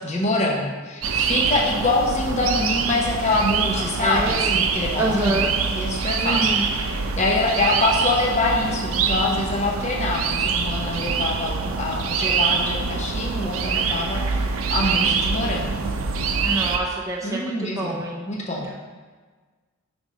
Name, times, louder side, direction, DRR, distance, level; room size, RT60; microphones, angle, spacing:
voice 1, 0.0-6.9 7.2-14.2 14.7-15.8 17.2-18.7, left 2 dB, 30° left, -2 dB, 0.8 m, -25 dB
sound 1, 1.0-16.8, right 5 dB, 70° right, 0.5 m, -24 dB
voice 2, 4.0-4.6 4.9-5.5 6.2-6.7 16.4-18.2 18.6-18.7, right 1 dB, 15° right, -3 dB, 0.4 m, -26 dB
5.2 x 3.5 x 5.1 m, 1.4 s
head